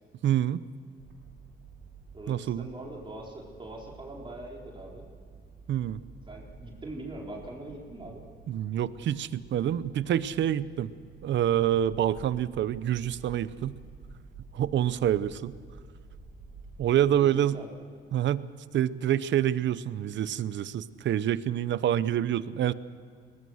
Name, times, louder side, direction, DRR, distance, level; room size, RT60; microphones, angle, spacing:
voice 1, 0.2-0.6 2.3-2.7 5.7-6.0 8.5-10.9 11.2-13.8 14.5-15.5 16.8-17.6 18.1-18.5 18.7-22.7, right 11 dB, 65° right, 16 dB, 0.8 m, -27 dB
sound 1, 1.0-16.9, right 4 dB, 85° right, 5.3 m, -50 dB
voice 2, 2.1-5.1 6.3-8.2 17.2-17.7, right 2 dB, 25° right, -2 dB, 4.2 m, -42 dB
22.5 x 19.5 x 6.5 m, 2.2 s
cardioid pair, 90°, 20 cm